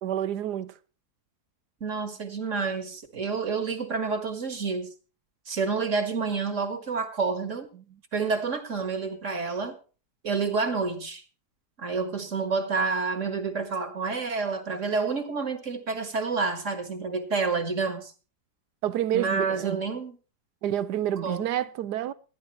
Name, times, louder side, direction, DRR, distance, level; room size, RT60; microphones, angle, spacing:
voice 1, 0.0-0.7 7.7-7.8 18.8-19.8 20.6-22.1, right 11 dB, 80° right, 1.3 m, -28 dB
voice 2, 1.8-4.9 5.5-7.7 8.1-9.8 10.2-11.2 11.8-18.1 19.1-20.2 21.2-21.5, right 4 dB, 50° right, 2.0 m, -29 dB
18.5 x 10.5 x 3.1 m
omnidirectional pair, 1.7 m